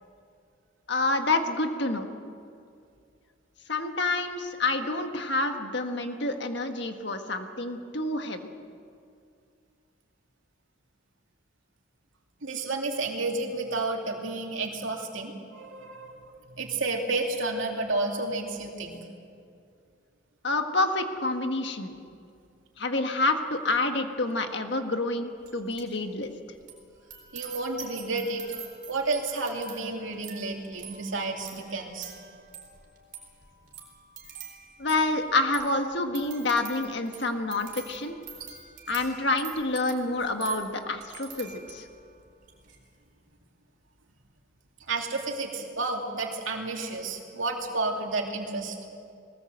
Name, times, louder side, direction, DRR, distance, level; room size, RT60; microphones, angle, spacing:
voice 1, 0.9-2.1 3.7-8.5 20.4-22.0 22.8-26.3 34.8-38.2 38.9-41.8, left 2 dB, 55° left, 6 dB, 1.6 m, -28 dB
voice 2, 12.4-16.2 16.6-19.0 27.3-28.4 28.9-32.1 44.9-48.8, right 3 dB, 75° right, 1 dB, 2.7 m, -31 dB
sound 1, 25.4-26.0 26.2-42.0 42.4-42.8, right 7 dB, 40° right, 4.3 m, -46 dB
21.0 x 19.5 x 8.0 m, 2.4 s
head